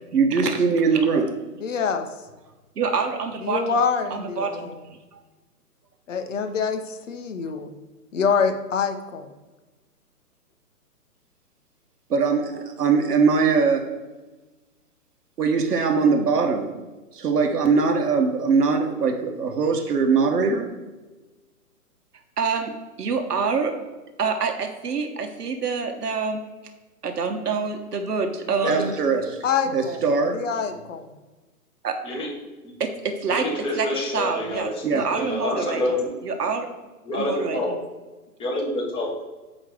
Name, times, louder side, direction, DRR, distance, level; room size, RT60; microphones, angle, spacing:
voice 1, 0.1-1.4 2.8-3.8 4.1-4.7 12.1-13.9 15.4-16.7 17.1-20.7 22.4-22.7 23.0-23.7 24.2-26.4 27.0-29.4 29.7-30.4 31.8-31.9 32.8-33.5 33.7-33.9 34.1-35.8 36.2-36.7 37.1-37.6, right 5 dB, 80° right, 4 dB, 1.4 m, -23 dB
voice 2, 1.6-2.1 3.4-4.8 6.1-7.7 8.1-9.3 29.4-30.0 30.3-31.1, left 6 dB, 50° left, 6 dB, 1.1 m, -25 dB
voice 3, 32.0-32.7 33.3-34.8 35.1-36.1 36.3-36.5 37.0-37.7 38.4-39.2, left 1 dB, 10° left, -3 dB, 1.5 m, -27 dB
8.8 x 3.2 x 6.3 m, 1.2 s
hypercardioid pair, 140°, 46 cm